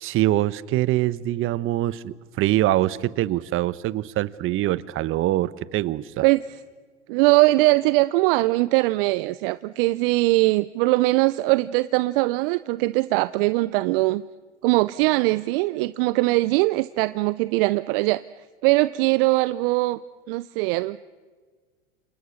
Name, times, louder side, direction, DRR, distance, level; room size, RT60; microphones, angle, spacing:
voice 1, 0.0-6.2, right 15 dB, 35° right, 18 dB, 1.0 m, -24 dB
voice 2, 7.1-14.2 14.6-18.2 18.6-20.0 20.3-21.0, right 21 dB, 55° right, 16 dB, 0.7 m, -21 dB
29.0 x 27.5 x 6.6 m, 1.5 s
hypercardioid pair, 100°, 34 cm